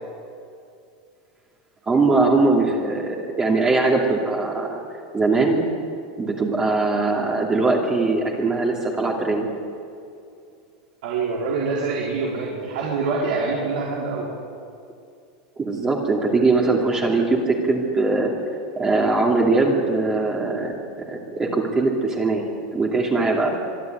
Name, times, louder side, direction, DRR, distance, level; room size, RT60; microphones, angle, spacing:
voice 1, 1.9-4.8 5.1-5.6 6.2-9.5 15.6-18.3 18.8-20.7 21.1-22.4 22.7-23.6, right 3 dB, 15° right, -1 dB, 2.6 m, -21 dB
voice 2, 11.0-14.3, right 4 dB, 70° right, -5 dB, 4.7 m, -25 dB
25.5 x 11.0 x 9.2 m, 2.5 s
supercardioid pair, 150°, 4 cm